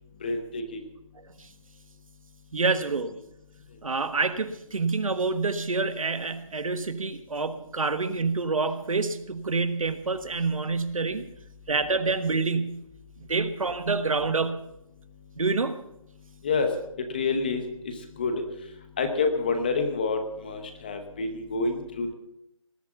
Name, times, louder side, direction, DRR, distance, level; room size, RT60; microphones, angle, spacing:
voice 1, 0.2-0.8 16.4-16.7 17.1-18.4 19.0-22.1, left 4 dB, 15° left, 7 dB, 0.9 m, -28 dB
voice 2, 2.5-3.1 3.8-11.3 11.7-12.8 13.3-14.6 15.4-15.8, right 4 dB, 70° right, 11 dB, 1.4 m, -27 dB
19.0 x 8.6 x 7.0 m, 0.82 s
hypercardioid pair, 175°, 18 cm